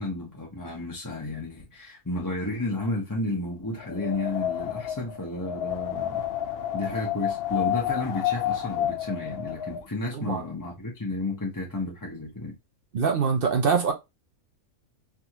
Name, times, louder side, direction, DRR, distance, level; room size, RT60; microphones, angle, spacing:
voice 1, 0.0-6.2 6.7-12.5, left 2 dB, 15° left, 0.7 m, -32 dB
Wind, 3.8-9.8, left 11 dB, 70° left, 0.5 m, -30 dB
voice 2, 12.9-13.9, right 5 dB, 55° right, 0.7 m, -24 dB
3.5 x 2.5 x 2.8 m
omnidirectional pair, 1.6 m